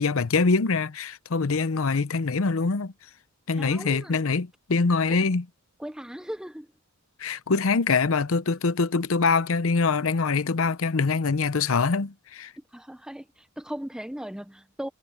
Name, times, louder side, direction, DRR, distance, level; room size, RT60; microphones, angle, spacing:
voice 1, 0.0-2.9 3.5-5.5 7.2-12.5, left 4 dB, 65° left, 0.7 m, -24 dB
voice 2, 3.6-4.3 5.1-5.2 5.8-6.7 12.7-14.9, equal, 5° right, 0.5 m, -37 dB
head